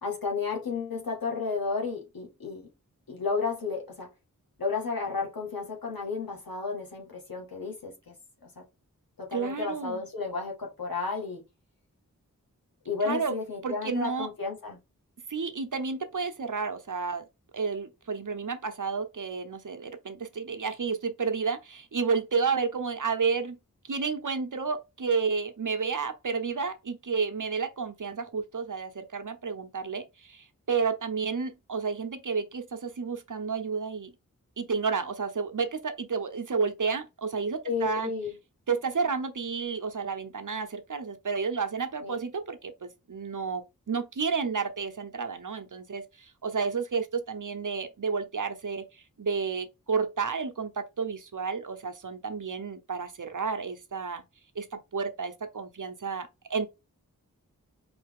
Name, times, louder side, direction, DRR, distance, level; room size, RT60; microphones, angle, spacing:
voice 1, 0.0-2.7 3.1-4.1 4.6-8.1 8.4-8.5 9.2-11.4 12.9-14.8 37.7-38.3 42.0-42.2, left 4 dB, 90° left, 1.7 m, -32 dB
voice 2, 9.3-10.0 13.0-13.3 13.6-14.3 15.3-17.2 17.5-23.6 23.9-34.1 34.6-38.1 38.7-54.2 54.5-56.7, right 5 dB, 60° right, 0.9 m, -31 dB
4.4 x 3.3 x 3.5 m
wide cardioid pair, 45°, 34 cm